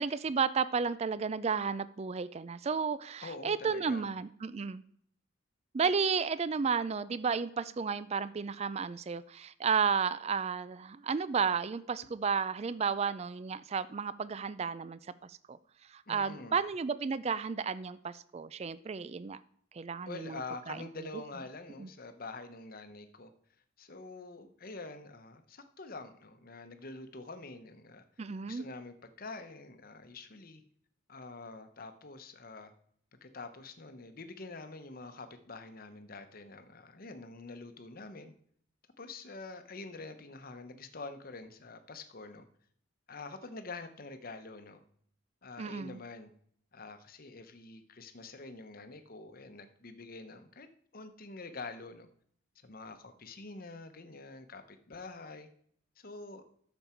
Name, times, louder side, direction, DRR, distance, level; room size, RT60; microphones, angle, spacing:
voice 1, 0.0-4.8 5.7-15.6 15.9-19.4 19.7-20.4 20.7-20.9 21.8-21.9 28.2-28.7 45.6-46.0, right 5 dB, 30° right, 16 dB, 0.4 m, -33 dB
voice 2, 3.2-4.0 16.1-16.6 20.0-23.3 23.8-28.0 28.4-30.6 31.1-32.7 33.2-38.3 39.0-42.5 43.1-44.8 45.4-46.3 46.7-50.7 50.9-52.1 52.6-55.5 56.0-56.4, left 3 dB, 45° left, 8 dB, 0.9 m, -46 dB
12.0 x 7.1 x 4.4 m, 0.63 s
head